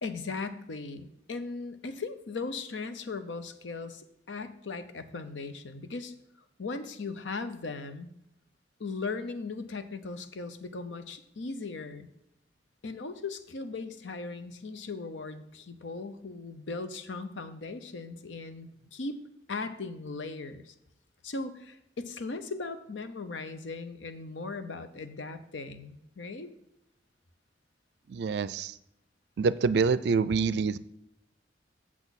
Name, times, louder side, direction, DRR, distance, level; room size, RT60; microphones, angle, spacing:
voice 1, 0.0-6.1 6.6-8.1 8.8-12.1 12.8-19.2 19.5-20.7 21.2-26.5, left 3 dB, 85° left, 10 dB, 0.7 m, -38 dB
voice 2, 28.1-28.8 29.4-30.8, right 5 dB, 65° right, 17 dB, 0.3 m, -26 dB
8.1 x 7.2 x 4.1 m, 0.80 s
head